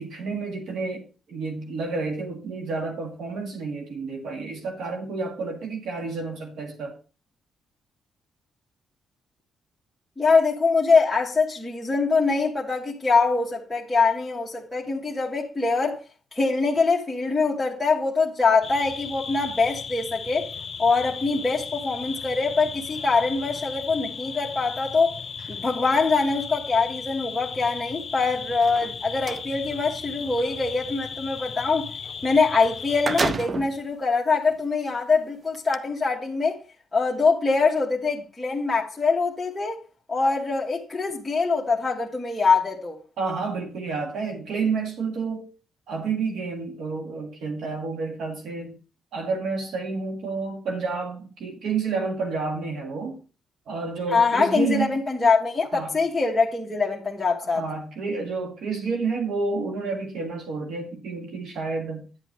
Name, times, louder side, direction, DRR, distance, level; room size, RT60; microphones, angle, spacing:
voice 1, 0.0-7.0 43.2-45.5 45.9-48.8 49.1-53.2 53.7-55.0 55.7-56.0 57.4-62.1, right 4 dB, 70° right, 1.7 m, -30 dB
voice 2, 10.2-16.0 16.3-20.5 20.8-25.1 25.5-31.9 32.2-36.6 36.9-39.8 40.1-43.0 54.1-57.6, left 4 dB, 10° left, 1.4 m, -23 dB
sound 1, 18.6-33.3, left 6 dB, 40° left, 0.9 m, -36 dB
sound 2, 28.5-29.5 32.3-32.4 32.7-33.8 34.5-34.6 35.5-35.8, right 4 dB, 35° right, 0.4 m, -29 dB
10.5 x 8.0 x 3.1 m
cardioid pair, 120°, 0 cm